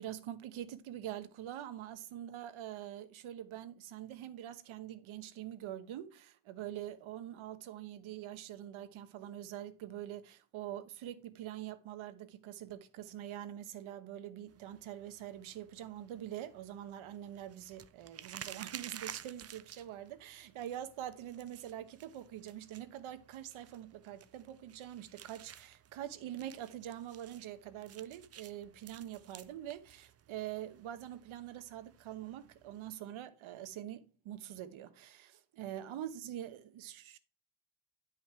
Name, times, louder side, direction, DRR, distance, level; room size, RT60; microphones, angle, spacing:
voice 1, 0.0-37.2, right 11 dB, 85° right, 1.2 m, -44 dB
sound 1, 14.5-33.0, right 10 dB, 35° right, 0.5 m, -54 dB
10.5 x 5.6 x 4.4 m
cardioid pair, 165°, 47 cm